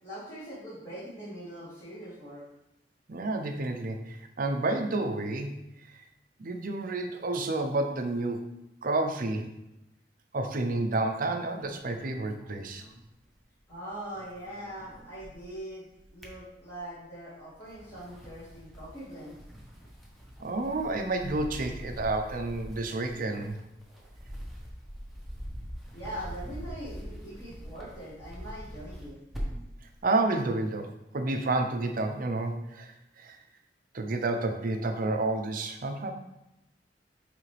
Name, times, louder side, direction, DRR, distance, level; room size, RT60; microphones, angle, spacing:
voice 1, 0.0-2.4 13.7-15.9 16.1-19.4 25.9-29.2, right 1 dB, 20° left, -11 dB, 1.9 m, -42 dB
voice 2, 3.1-5.5 5.8-5.9 6.4-8.5 8.8-9.5 10.3-12.8 20.4-23.6 30.0-33.4 33.9-36.1, right 2 dB, 50° right, 5 dB, 0.6 m, -30 dB
sound 1, 11.6-13.7 14.0-15.6 16.0-17.0 17.5-29.8, equal, ahead, 1.1 m, -43 dB
8.7 x 3.4 x 3.3 m, 0.87 s
head